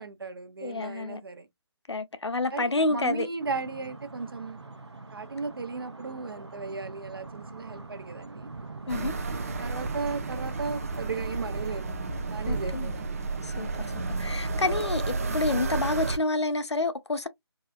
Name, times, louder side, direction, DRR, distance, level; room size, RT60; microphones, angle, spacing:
voice 1, 0.0-1.5 2.5-4.6 5.1-8.5 9.2-12.0 12.3-13.2, right 4 dB, 60° right, 1.0 m, -36 dB
voice 2, 0.6-1.2 1.9-3.3 8.9-9.1 12.5-12.9 13.4-13.7 14.2-17.3, left 2 dB, 85° left, 0.6 m, -28 dB
sound 1, 3.4-11.3, right 3 dB, 85° right, 0.9 m, -44 dB
sound 2, 8.9-16.2, right 3 dB, 35° right, 0.5 m, -31 dB
4.1 x 2.5 x 2.3 m
figure-of-eight pair, 155°, 14 cm